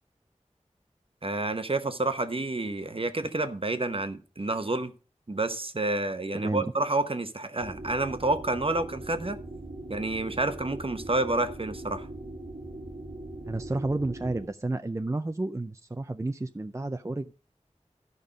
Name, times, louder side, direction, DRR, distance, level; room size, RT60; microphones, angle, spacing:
voice 1, 1.2-4.9 5.3-9.4 9.9-12.1, right 2 dB, 45° right, 0.9 m, -29 dB
voice 2, 6.3-6.7 13.4-17.3, right 2 dB, 25° right, 0.4 m, -31 dB
sound 1, 7.6-14.5, right 2 dB, 90° right, 1.6 m, -41 dB
12.5 x 5.4 x 5.1 m
wide cardioid pair, 55°, 13 cm